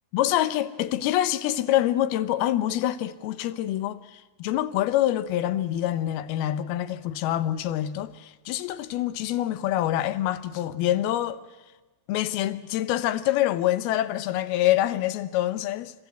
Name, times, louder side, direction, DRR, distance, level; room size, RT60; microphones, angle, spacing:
voice 1, 0.1-11.4 12.1-15.9, left 13 dB, 85° left, 2.7 m, -26 dB
25.5 x 15.5 x 8.1 m
omnidirectional pair, 4.4 m